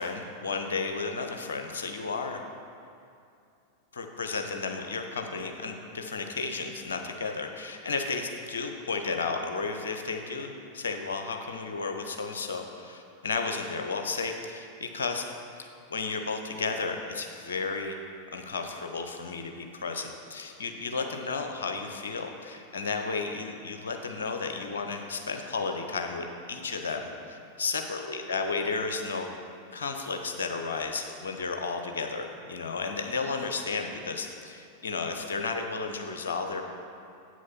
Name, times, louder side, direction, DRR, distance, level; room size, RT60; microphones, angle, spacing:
voice 1, 0.0-2.4 3.9-15.2 15.6-18.0 18.3-29.3 29.7-36.6, left 4 dB, 65° left, 4 dB, 0.8 m, -33 dB
8.2 x 6.3 x 5.7 m, 2.4 s
figure-of-eight pair, 90°, 0 cm